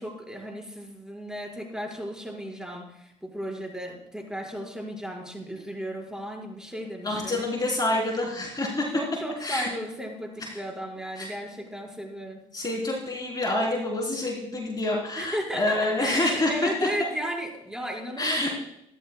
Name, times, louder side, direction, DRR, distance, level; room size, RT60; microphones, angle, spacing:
voice 1, 0.0-7.5 8.9-12.4 15.2-18.5, equal, 5° right, -1 dB, 5.3 m, -35 dB
voice 2, 7.0-9.0 9.4-9.7 10.4-10.6 11.2-11.3 12.5-17.1 18.2-18.5, left 2 dB, 25° left, -2 dB, 3.8 m, -27 dB
25.5 x 11.0 x 2.3 m, 0.80 s
hypercardioid pair, 60°, 15 cm